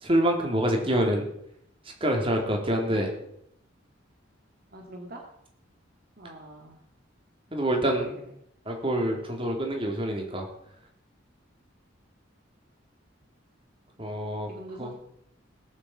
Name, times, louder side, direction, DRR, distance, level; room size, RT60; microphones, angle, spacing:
voice 1, 0.0-1.2 2.0-3.1 7.5-8.1 8.7-10.4 14.0-14.5 14.8-14.9, right 1 dB, 30° right, 1 dB, 3.4 m, -26 dB
voice 2, 4.7-5.2 6.2-6.8 8.0-8.1 14.5-14.9, right 1 dB, 50° right, 1 dB, 2.1 m, -43 dB
19.5 x 7.5 x 7.5 m, 0.74 s
head